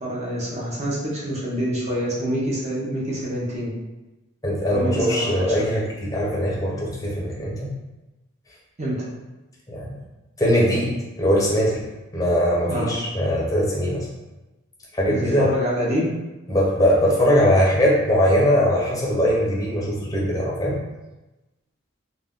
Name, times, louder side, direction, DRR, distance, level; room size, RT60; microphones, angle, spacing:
voice 1, 0.0-3.7 4.7-5.7 8.8-9.1 12.7-12.9 15.1-16.1, equal, 35° right, -6 dB, 0.7 m, -26 dB
voice 2, 4.4-7.7 9.7-9.9 10.4-11.8 12.1-14.1 14.9-15.5 16.5-20.8, equal, 15° left, -4 dB, 0.6 m, -21 dB
2.5 x 2.2 x 3.5 m, 1.1 s
head